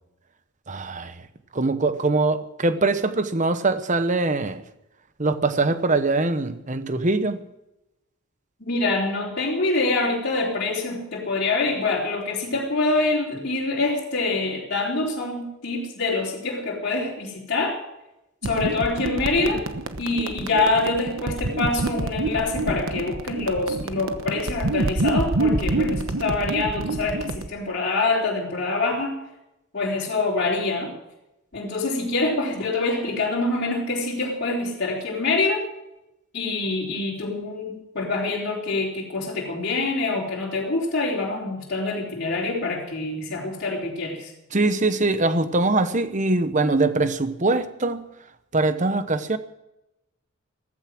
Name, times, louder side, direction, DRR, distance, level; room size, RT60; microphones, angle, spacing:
voice 1, 0.7-1.3 1.5-4.6 5.2-7.4 44.5-48.1 48.5-49.4, right 2 dB, 35° right, 1.0 m, -22 dB
voice 2, 8.6-17.8 18.4-19.6 20.0-29.2 29.7-30.9 31.5-35.6 36.3-44.3, left 3 dB, 50° left, 3.7 m, -25 dB
sound 1, 18.4-27.5, right 2 dB, 60° right, 1.1 m, -27 dB
16.0 x 14.5 x 6.1 m
head